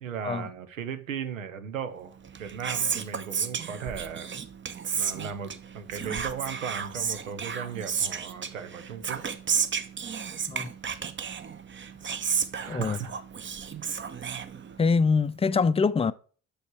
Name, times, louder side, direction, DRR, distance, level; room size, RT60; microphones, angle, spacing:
voice 1, 0.0-4.3 5.0-9.3 12.6-13.1, right 7 dB, 85° right, 0.8 m, -37 dB
Whispering, 2.2-15.0, right 6 dB, 30° right, 0.9 m, -33 dB
voice 2, 12.7-13.0 14.8-16.1, left 5 dB, 15° left, 0.5 m, -24 dB
7.8 x 6.5 x 4.6 m
figure-of-eight pair, 45°, 39 cm